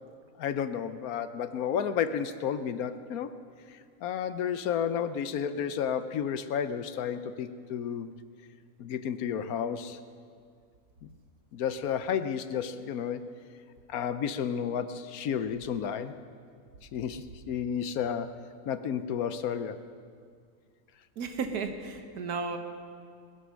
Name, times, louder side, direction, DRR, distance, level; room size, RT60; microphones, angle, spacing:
voice 1, 0.4-3.3 3.7-8.2 8.8-10.0 11.0-11.1 11.5-13.2 13.9-16.1 16.9-18.4 18.7-19.8, left 8 dB, 70° left, 12 dB, 1.1 m, -32 dB
voice 2, 21.2-22.6, right 4 dB, 80° right, 6 dB, 1.7 m, -33 dB
19.5 x 11.0 x 6.3 m, 2.2 s
omnidirectional pair, 1.6 m